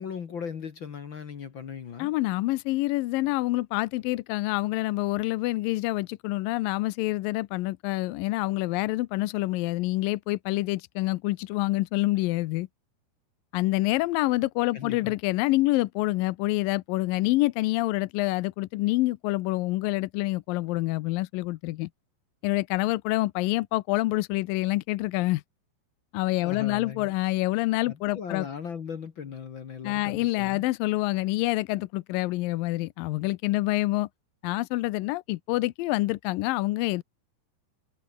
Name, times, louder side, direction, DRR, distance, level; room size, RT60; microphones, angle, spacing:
voice 1, 0.0-2.1 14.7-15.1 26.4-27.1 27.9-30.6, left 7 dB, 60° left, 1.2 m, -38 dB
voice 2, 2.0-12.7 13.5-21.9 22.4-25.4 26.1-28.5 29.8-34.1 34.4-37.0, left 19 dB, 85° left, 2.1 m, -27 dB
omnidirectional pair, 4.7 m